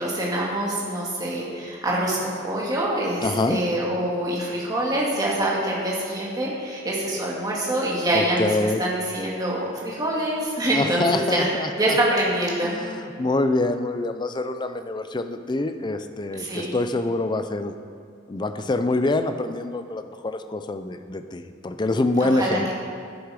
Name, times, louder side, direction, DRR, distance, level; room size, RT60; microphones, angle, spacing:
voice 1, 0.0-11.5 11.8-12.7 16.3-16.7 22.2-22.7, right 1 dB, 20° right, -5 dB, 2.0 m, -25 dB
voice 2, 3.2-3.6 8.1-8.8 10.7-12.0 12.6-17.7 18.3-22.7, left 2 dB, 20° left, 8 dB, 0.4 m, -25 dB
10.5 x 7.9 x 4.9 m, 2.3 s
head